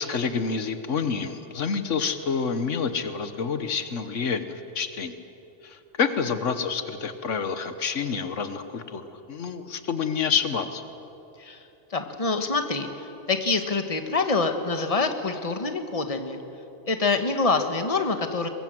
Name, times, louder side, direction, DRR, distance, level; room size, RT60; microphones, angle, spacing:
voice 1, 0.0-5.1 5.6-10.8, left 6 dB, 85° left, 10 dB, 1.5 m, -28 dB
voice 2, 11.4-16.4 16.8-18.5, left 3 dB, 30° left, 6 dB, 1.5 m, -26 dB
22.5 x 22.0 x 7.7 m, 3.0 s
omnidirectional pair, 1.2 m